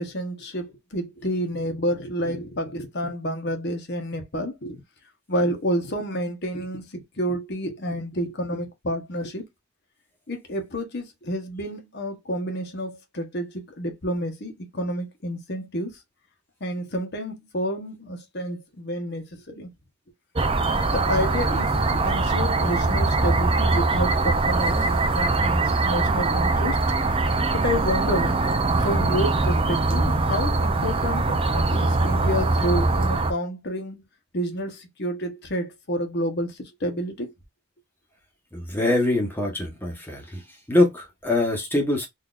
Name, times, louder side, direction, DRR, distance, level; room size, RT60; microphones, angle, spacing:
voice 1, 0.0-4.8 5.3-9.4 10.3-15.9 16.6-19.7 20.9-26.8 27.5-28.4 28.8-34.0 34.3-37.3, equal, 50° left, 1.1 m, -29 dB
sound 1, 20.3-33.3, right 3 dB, 25° right, 0.5 m, -22 dB
voice 2, 38.5-40.4 40.7-42.1, left 2 dB, 10° left, 1.1 m, -23 dB
3.9 x 2.8 x 2.5 m
head